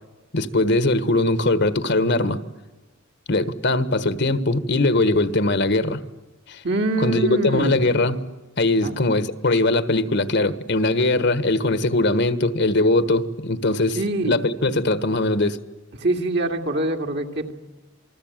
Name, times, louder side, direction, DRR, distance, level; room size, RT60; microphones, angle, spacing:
voice 1, 0.3-2.4 3.3-6.0 6.5-6.6 7.0-8.2 8.6-15.6, left 2 dB, 60° left, 13 dB, 1.4 m, -21 dB
voice 2, 6.6-7.8 8.8-9.0 13.9-14.4 16.0-17.5, right 2 dB, 60° right, 3 dB, 2.4 m, -24 dB
28.0 x 21.0 x 9.0 m, 1.1 s
head